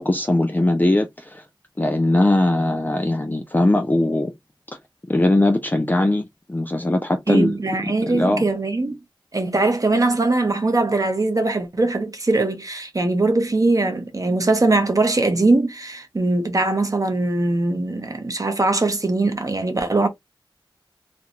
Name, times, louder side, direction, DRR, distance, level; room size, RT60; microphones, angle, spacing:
voice 1, 0.0-1.4 1.8-4.3 5.1-7.6 7.8-8.4, left 1 dB, 20° left, 0.4 m, -20 dB
voice 2, 7.3-9.0 9.3-20.1, right 2 dB, 40° right, 0.6 m, -21 dB
2.5 x 2.2 x 2.8 m
wide cardioid pair, 65°, 9 cm